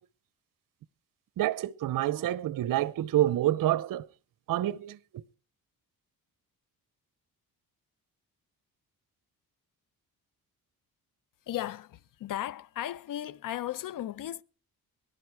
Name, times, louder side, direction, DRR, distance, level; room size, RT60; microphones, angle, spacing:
voice 1, 1.4-4.1 4.5-5.2, right 14 dB, 65° right, 0.7 m, -28 dB
voice 2, 11.5-14.4, left 13 dB, 60° left, 0.7 m, -36 dB
19.0 x 11.0 x 4.7 m
cardioid pair, 105°, 36 cm